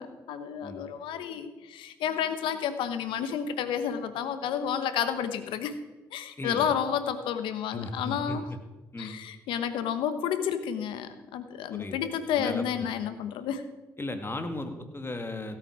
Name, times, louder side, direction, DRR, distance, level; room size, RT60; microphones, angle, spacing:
voice 1, 0.0-5.7 6.1-8.4 9.0-13.7, left 8 dB, 80° left, 11 dB, 1.1 m, -31 dB
voice 2, 6.4-6.7 7.7-8.4 8.9-9.2 11.7-12.0 12.3-12.9 14.0-15.6, left 2 dB, 25° left, 6 dB, 2.1 m, -36 dB
16.0 x 8.5 x 5.0 m, 1.2 s
hypercardioid pair, 45°, 9 cm